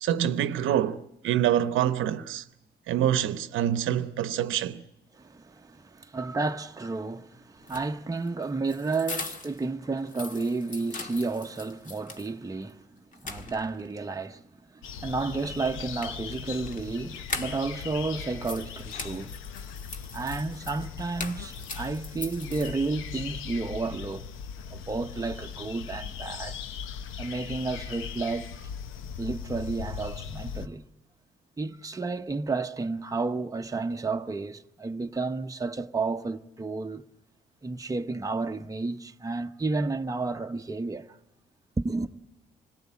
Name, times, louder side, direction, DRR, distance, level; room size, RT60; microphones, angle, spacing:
voice 1, 0.0-2.4 2.9-4.8, right 10 dB, 80° right, 0.8 m, -26 dB
voice 2, 5.2-12.8 13.2-14.4 14.7-19.4 20.1-24.3 24.7-26.6 27.2-28.7 29.2-30.9 31.6-37.0 37.6-41.2 41.8-42.1, right 3 dB, 15° right, 0.9 m, -31 dB
sound 1, 7.6-9.7 10.0-12.3 12.7-12.8 13.1-14.0 15.6-17.9 18.2-23.1, left 3 dB, 40° left, 1.6 m, -41 dB
sound 2, 14.8-30.7, left 7 dB, 90° left, 0.9 m, -39 dB
26.0 x 17.5 x 8.6 m
cardioid pair, 90°, 20 cm